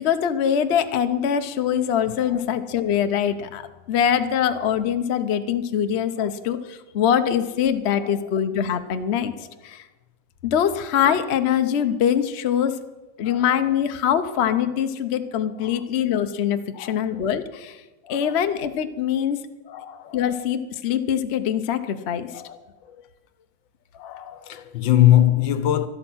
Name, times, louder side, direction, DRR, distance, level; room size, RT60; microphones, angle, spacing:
voice 1, 0.0-9.3 9.6-9.8 10.4-12.7 13.2-17.8 18.1-19.4 20.1-22.4, left 9 dB, 55° left, 0.7 m, -23 dB
voice 2, 8.0-8.3 9.4-9.5 13.2-13.5 15.6-15.8 16.7-17.2 18.0-18.4 19.7-20.3 22.3-22.6 22.9-23.0 23.9-25.9, left 13 dB, 80° left, 1.6 m, -23 dB
12.5 x 12.0 x 6.2 m
omnidirectional pair, 2.0 m